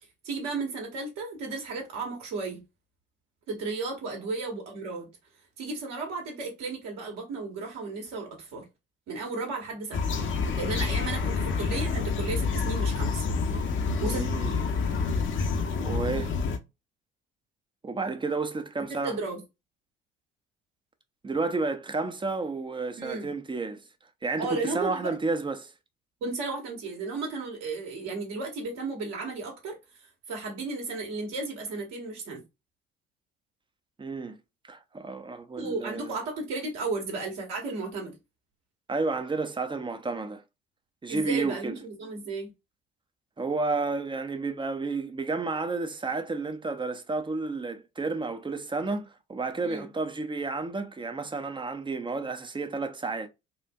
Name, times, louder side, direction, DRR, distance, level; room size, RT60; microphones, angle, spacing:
voice 1, 0.2-2.6 3.5-5.1 5.6-8.6 9.1-10.2 10.6-13.2 14.0-14.2 18.9-19.4 23.0-23.3 24.4-25.2 26.2-29.8 30.3-32.4 35.6-38.1 41.1-42.5 49.6-49.9, right 3 dB, 60° right, 1.5 m, -34 dB
sound 1, 9.9-16.6, left 4 dB, 40° left, 0.8 m, -28 dB
voice 2, 14.1-14.6 15.8-16.3 17.8-19.2 21.2-23.8 24.2-25.7 34.0-34.4 34.7-36.2 38.9-40.4 41.0-41.8 43.4-53.3, right 3 dB, 15° right, 0.6 m, -31 dB
4.4 x 2.6 x 2.3 m
figure-of-eight pair, 50°, 30 cm